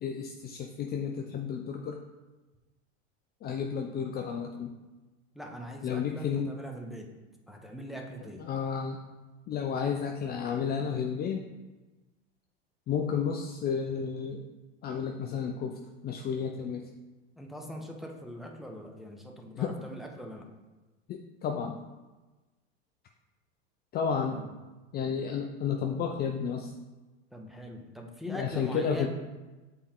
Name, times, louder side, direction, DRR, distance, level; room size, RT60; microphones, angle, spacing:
voice 1, 0.0-2.0 3.4-4.7 5.8-6.6 8.4-9.0 9.5-11.4 12.9-14.4 14.8-16.9 19.5-19.8 21.1-21.8 23.9-24.4 24.9-26.7 28.3-29.1, left 6 dB, 30° left, 3 dB, 0.4 m, -32 dB
voice 2, 5.3-7.1 7.5-8.5 17.4-20.5 24.3-24.5 27.3-29.1, equal, ahead, 0 dB, 0.8 m, -42 dB
6.9 x 4.3 x 3.6 m, 1.2 s
hypercardioid pair, 105°, 32 cm